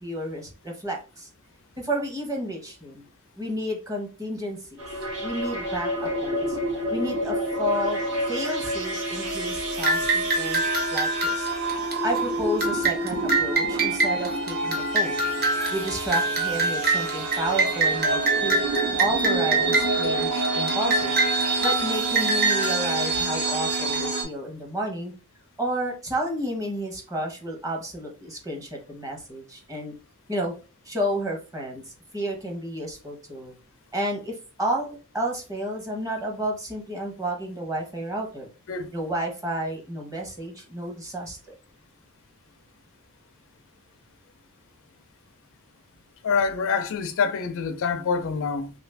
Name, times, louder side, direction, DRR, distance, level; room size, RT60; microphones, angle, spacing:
voice 1, 0.0-1.3 1.8-3.0 3.3-4.8 5.2-6.6 6.9-8.0 8.3-11.5 12.0-15.2 15.7-18.6 19.0-21.2 21.6-25.1 25.6-29.9 30.3-30.6 30.8-33.5 33.9-38.5 38.9-41.5, right 1 dB, 15° right, 0.8 m, -31 dB
sound 1, 4.8-24.2, right 2 dB, 75° right, 1.0 m, -28 dB
sound 2, 9.8-24.0, right 3 dB, 45° right, 0.9 m, -26 dB
voice 2, 46.2-48.7, left 5 dB, 65° left, 0.4 m, -26 dB
2.8 x 2.4 x 3.2 m
head